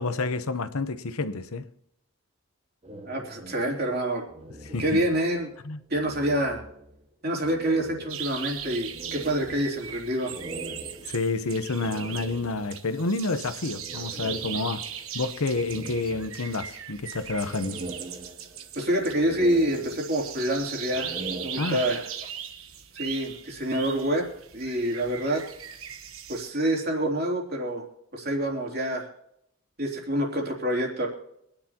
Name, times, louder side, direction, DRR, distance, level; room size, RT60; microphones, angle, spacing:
voice 1, 0.0-1.7 4.6-5.0 5.6-5.8 11.1-14.9 15.1-17.8 21.6-21.9, left 3 dB, 85° left, 0.9 m, -29 dB
sound 1, 2.8-5.6 5.9-7.0 7.4-12.9 13.8-15.1 15.5-16.8 17.2-18.7 19.1-20.4 20.8-22.2, right 1 dB, 25° right, 0.9 m, -42 dB
voice 2, 3.0-4.3 4.8-5.5 5.9-6.6 7.2-10.3 18.7-21.2 21.4-22.1 22.9-24.3 24.5-25.4 26.3-27.8 28.1-29.1 29.8-31.1, right 1 dB, 45° right, 3.2 m, -27 dB
sound 2, 8.1-26.5, right 9 dB, 70° right, 1.2 m, -39 dB
sound 3, 19.4-22.0, left 4 dB, 20° left, 2.8 m, -46 dB
25.0 x 10.0 x 2.9 m
head